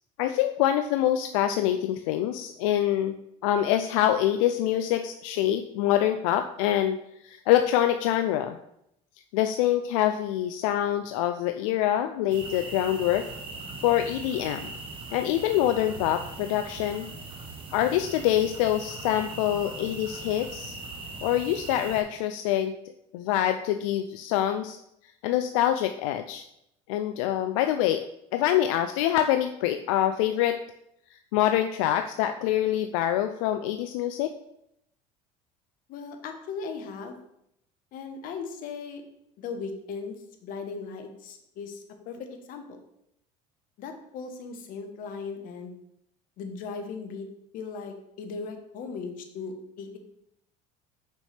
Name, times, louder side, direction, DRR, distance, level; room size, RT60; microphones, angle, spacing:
voice 1, 0.2-3.1 3.4-7.0 7.2-8.6 9.3-13.2 13.8-14.7 15.1-17.1 17.7-20.8 21.2-22.7 23.1-24.8 25.2-26.4 26.9-28.0 28.3-30.6 31.3-34.3, left 12 dB, 85° left, 8 dB, 0.4 m, -25 dB
sound 1, 12.3-22.0, right 3 dB, 35° right, 1.2 m, -40 dB
voice 2, 35.9-37.2 37.9-39.0 39.4-42.8 43.8-45.7 46.4-47.3 47.5-50.0, left 5 dB, 60° left, 5 dB, 1.1 m, -38 dB
6.0 x 5.6 x 3.3 m, 0.78 s
supercardioid pair, 105°, 16 cm